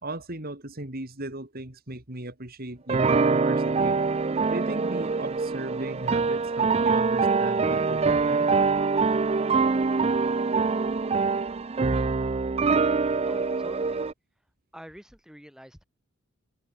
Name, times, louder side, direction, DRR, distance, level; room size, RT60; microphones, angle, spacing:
voice 1, 0.0-4.0 4.5-8.5, right 1 dB, 45° right, 3.2 m, -37 dB
sound 1, 2.9-14.1, right 4 dB, 30° right, 0.4 m, -24 dB
voice 2, 13.2-14.0 14.7-15.8, equal, 5° right, 5.6 m, -46 dB
head